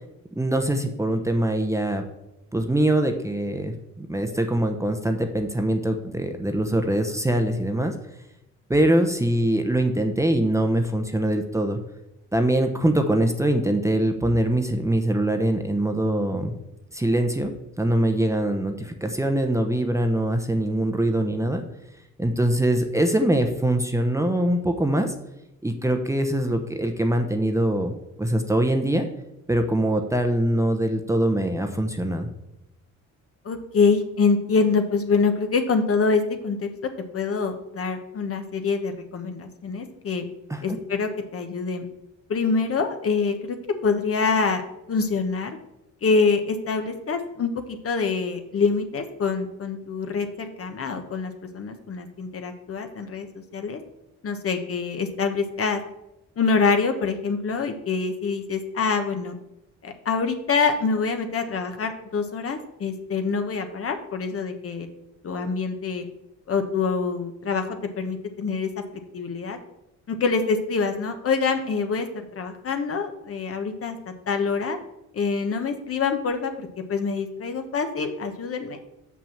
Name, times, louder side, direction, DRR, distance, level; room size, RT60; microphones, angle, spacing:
voice 1, 0.4-2.0 2.5-7.9 8.7-11.8 12.3-16.5 16.9-17.5 17.8-21.6 22.2-25.1 25.6-27.9 28.2-29.0 29.5-32.3 40.5-40.8, right 1 dB, 10° right, 5 dB, 0.9 m, -23 dB
voice 2, 33.4-36.7 37.1-40.3 40.6-41.8 42.3-43.6 43.8-45.6 46.0-53.3 53.5-53.8 54.2-55.8 56.4-59.4 59.8-64.9 65.2-66.0 66.5-69.6 70.1-74.0 74.3-74.8 75.1-78.8, left 4 dB, 50° left, 6 dB, 1.2 m, -25 dB
6.0 x 6.0 x 7.2 m, 0.88 s
cardioid pair, 90°, 30 cm